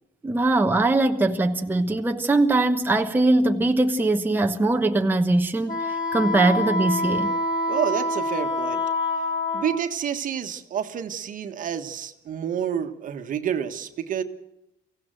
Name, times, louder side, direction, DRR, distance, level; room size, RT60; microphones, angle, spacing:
voice 1, 0.2-7.3, right 2 dB, 10° right, 1.1 m, -21 dB
Wind instrument woodwind instrument, 5.7-9.8, left 2 dB, 25° left, 6.1 m, -26 dB
voice 2, 7.7-8.8 9.5-14.2, right 8 dB, 50° right, 1.5 m, -29 dB
23.5 x 16.5 x 7.7 m
cardioid pair, 110°, 17 cm